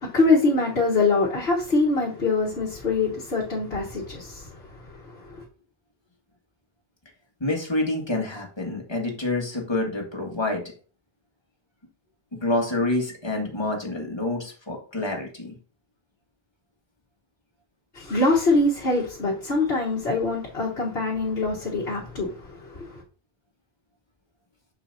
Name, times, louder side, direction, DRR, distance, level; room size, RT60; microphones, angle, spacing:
voice 1, 0.0-5.4 17.9-23.0, left 3 dB, 80° left, 1.7 m, -24 dB
voice 2, 7.4-10.6 12.3-15.6, left 2 dB, 25° left, 1.9 m, -27 dB
7.0 x 6.6 x 2.7 m
omnidirectional pair, 1.0 m